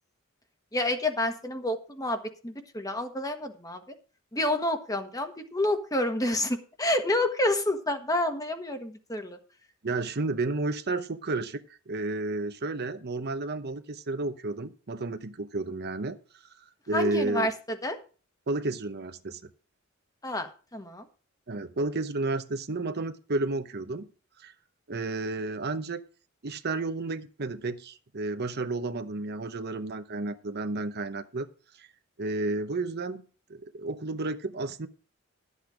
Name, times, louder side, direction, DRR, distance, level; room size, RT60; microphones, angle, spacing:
voice 1, 0.7-3.8 4.3-9.4 16.9-18.0 20.2-21.1, left 1 dB, 15° left, 6 dB, 1.4 m, -29 dB
voice 2, 9.8-11.6 11.9-16.2 16.9-17.5 18.5-19.4 21.5-24.1 24.4-24.5 24.9-26.0 26.4-31.5 31.8-31.9 32.2-33.2 33.5-34.9, right 2 dB, 50° right, 10 dB, 0.9 m, -31 dB
12.5 x 8.2 x 5.0 m, 0.37 s
head